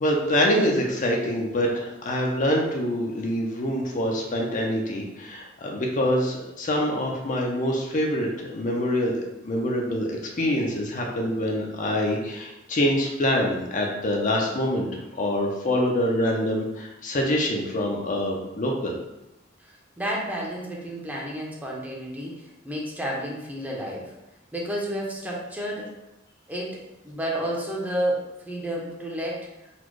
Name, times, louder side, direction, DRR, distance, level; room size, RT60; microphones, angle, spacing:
voice 1, 0.0-19.0, equal, 40° left, 0 dB, 0.6 m, -25 dB
voice 2, 19.6-24.1 24.5-25.9 26.5-29.5, right 1 dB, 10° right, -3 dB, 0.7 m, -31 dB
4.1 x 2.2 x 4.6 m, 0.93 s
head